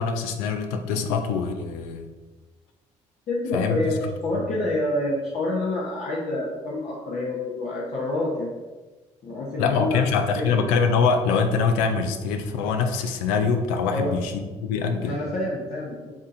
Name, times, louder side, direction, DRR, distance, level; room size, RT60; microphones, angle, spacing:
voice 1, 0.0-2.1 3.5-3.8 4.3-4.5 9.6-14.3 14.6-15.2, left 5 dB, 85° left, 6 dB, 0.5 m, -24 dB
voice 2, 3.3-8.5 9.2-10.0 10.4-10.6 13.9-14.1 15.0-16.1, left 2 dB, 60° left, -4 dB, 0.9 m, -27 dB
7.2 x 2.8 x 2.5 m, 1.2 s
hypercardioid pair, 55°, 14 cm